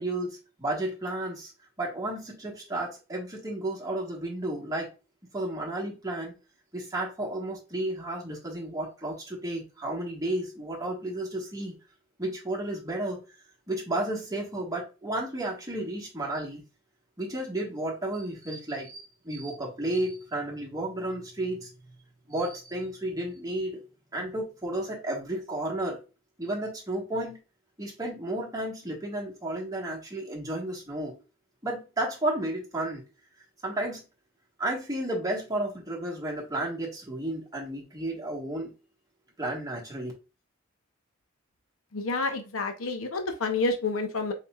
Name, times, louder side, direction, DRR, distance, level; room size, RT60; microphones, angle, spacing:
voice 1, 0.0-1.5 1.8-4.9 5.3-6.3 6.7-11.7 12.2-13.2 13.7-16.6 17.2-21.7 22.3-23.8 24.1-26.0 26.4-27.4 27.8-31.2 31.6-33.1 33.6-34.0 34.6-38.7 39.4-40.1, right 1 dB, 15° right, -3 dB, 1.4 m, -32 dB
voice 2, 41.9-44.3, left 3 dB, 90° left, 6 dB, 0.7 m, -29 dB
4.2 x 4.1 x 2.3 m, 0.31 s
head